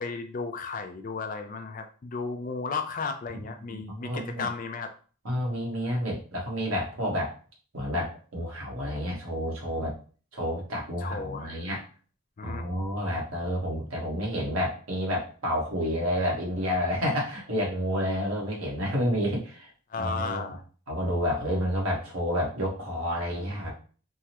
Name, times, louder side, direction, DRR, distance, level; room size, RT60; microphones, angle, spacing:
voice 1, 0.0-4.9 11.0-11.7 12.4-12.6 19.9-20.6, left 4 dB, 40° left, 6 dB, 0.4 m, -34 dB
voice 2, 3.7-4.5 5.2-7.3 7.7-9.9 10.3-11.8 12.4-19.7 20.0-20.5 20.9-23.7, equal, 85° right, -2 dB, 1.2 m, -29 dB
3.5 x 2.1 x 2.9 m, 0.39 s
head